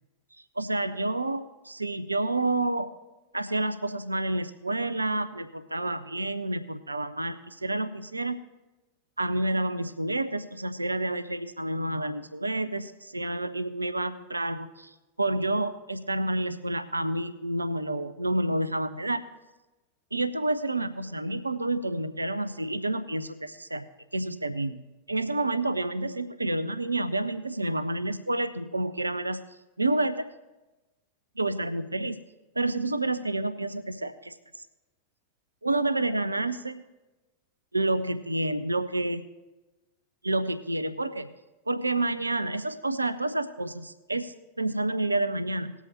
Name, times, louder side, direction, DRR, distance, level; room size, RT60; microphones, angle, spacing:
voice 1, 0.6-2.9 3.3-8.4 9.2-19.3 20.1-23.8 24.1-24.8 25.1-29.4 29.8-30.2 31.4-32.2 32.6-34.7 35.6-36.8 37.7-39.3 40.2-41.3 41.7-45.7, right 2 dB, 80° right, 12 dB, 0.5 m, -29 dB
19.5 x 8.1 x 2.9 m, 1.1 s
figure-of-eight pair, 90°, 0 cm